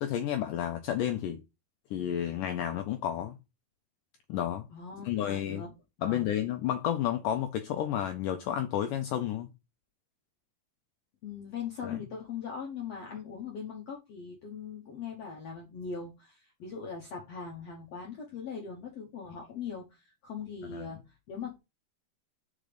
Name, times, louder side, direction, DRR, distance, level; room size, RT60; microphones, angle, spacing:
voice 1, 0.0-1.4 1.9-3.4 4.3-4.7 5.1-5.6 6.0-9.5 11.8-12.0 20.7-20.9, left 11 dB, 90° left, 1.8 m, -31 dB
voice 2, 4.7-5.7 6.0-6.3 11.2-21.6, left 6 dB, 70° left, 1.5 m, -40 dB
5.2 x 5.1 x 5.0 m
omnidirectional pair, 4.7 m